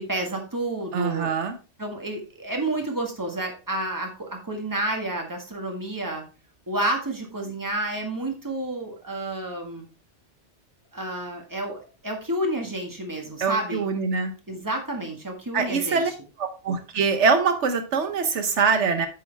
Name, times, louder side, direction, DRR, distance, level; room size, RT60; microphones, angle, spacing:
voice 1, 0.0-1.3 1.8-6.3 6.7-9.9 10.9-13.8 14.5-16.1, right 1 dB, 15° right, 2 dB, 1.8 m, -30 dB
voice 2, 0.9-1.6 13.4-14.3 15.5-16.1 16.4-19.1, right 5 dB, 80° right, 8 dB, 1.3 m, -23 dB
8.7 x 6.4 x 3.4 m, 0.32 s
omnidirectional pair, 1.2 m